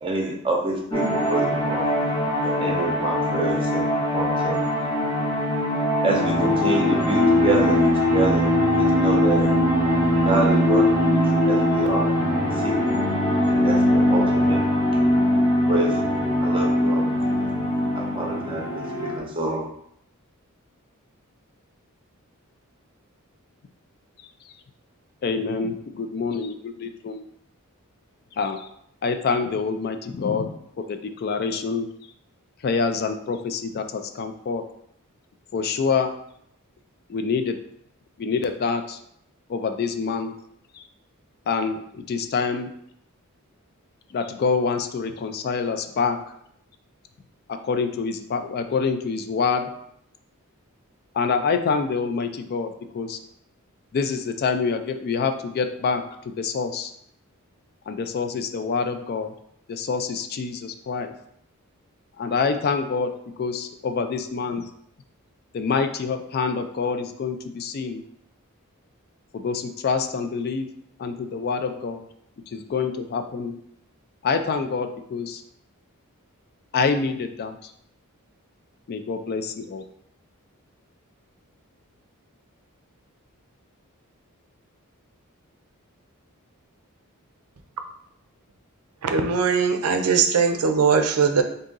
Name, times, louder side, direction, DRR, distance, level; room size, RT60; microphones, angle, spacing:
voice 1, 0.0-2.0 2.4-4.6 6.0-12.1 12.5-13.0 13.5-14.6 15.7-17.5 17.9-19.7, right 2 dB, 25° right, 0 dB, 0.7 m, -28 dB
sound 1, 0.9-19.2, left 1 dB, 20° left, 0.8 m, -21 dB
voice 2, 25.2-27.2 28.4-28.7 29.0-31.9 32.6-34.6 35.5-36.1 37.1-37.6 38.2-39.0 39.5-40.3 40.7-40.8 41.5-42.7 44.1-46.2 47.6-49.7 51.1-53.2 53.9-56.9 57.9-59.3 59.7-61.1 62.2-64.6 65.5-68.0 69.3-70.7 71.0-72.0 72.5-73.5 74.2-75.4 76.7-77.7 78.9-79.8, left 5 dB, 45° left, 7 dB, 0.3 m, -26 dB
voice 3, 89.0-91.4, right 5 dB, 85° right, 6 dB, 0.5 m, -20 dB
3.6 x 2.7 x 3.9 m, 0.71 s
head